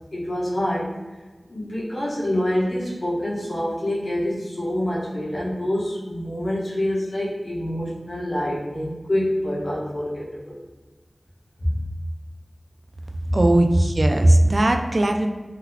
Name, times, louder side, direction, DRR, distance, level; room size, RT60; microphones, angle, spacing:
voice 1, 0.1-0.9 1.5-10.6 11.6-11.8 13.2-13.4, left 1 dB, 75° left, -7 dB, 1.1 m, -26 dB
voice 2, 13.3-15.3, right 1 dB, 55° right, 5 dB, 0.3 m, -18 dB
3.8 x 2.9 x 2.3 m, 1.3 s
wide cardioid pair, 65°, 0 cm